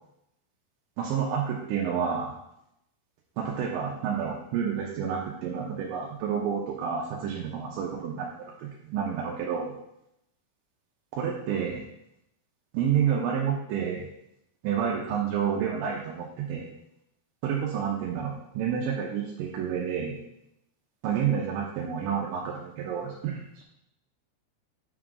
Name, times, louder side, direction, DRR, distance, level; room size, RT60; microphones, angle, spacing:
voice 1, 1.0-2.3 3.4-9.7 11.1-11.8 12.7-14.1 14.6-16.7 17.4-20.2 21.0-23.6, right 7 dB, 80° right, -3 dB, 3.2 m, -29 dB
7.3 x 3.8 x 6.0 m, 0.80 s
omnidirectional pair, 5.3 m